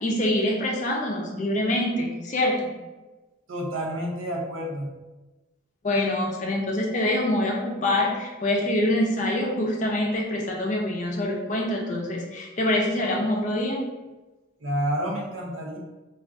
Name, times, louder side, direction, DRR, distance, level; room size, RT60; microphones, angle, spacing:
voice 1, 0.0-2.7 5.8-13.8, left 1 dB, 40° left, 0 dB, 0.5 m, -25 dB
voice 2, 3.5-4.9 14.6-15.8, equal, 75° right, 0 dB, 0.6 m, -29 dB
2.4 x 2.3 x 3.4 m, 1.2 s
head